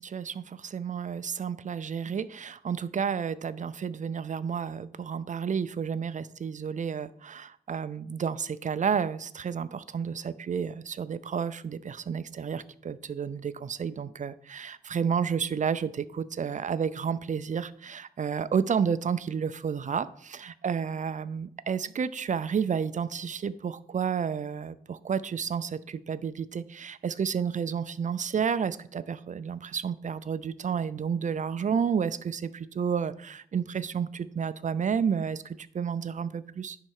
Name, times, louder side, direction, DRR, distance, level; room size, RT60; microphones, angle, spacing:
voice 1, 0.0-36.8, right 7 dB, 50° right, 15 dB, 0.5 m, -31 dB
10.5 x 4.3 x 4.6 m, 0.63 s
wide cardioid pair, 90°, 16 cm